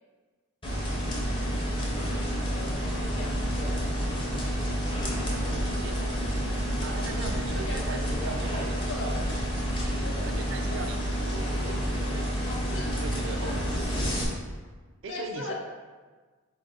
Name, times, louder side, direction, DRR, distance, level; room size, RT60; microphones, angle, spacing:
sound 1, 0.6-14.2, equal, 25° left, 0.6 m, -29 dB
voice 1, 2.4-4.4 5.0-5.3 7.5-9.3 10.0-10.4 10.7-10.9 12.4-12.9 13.4-13.6 15.1-15.5, left 2 dB, 60° left, 0 dB, 0.7 m, -40 dB
voice 2, 5.3-6.4 6.8-9.4 10.2-12.4 12.7-13.9 15.0-15.5, right 4 dB, 60° right, 4 dB, 0.4 m, -40 dB
4.5 x 2.5 x 3.9 m, 1.4 s
head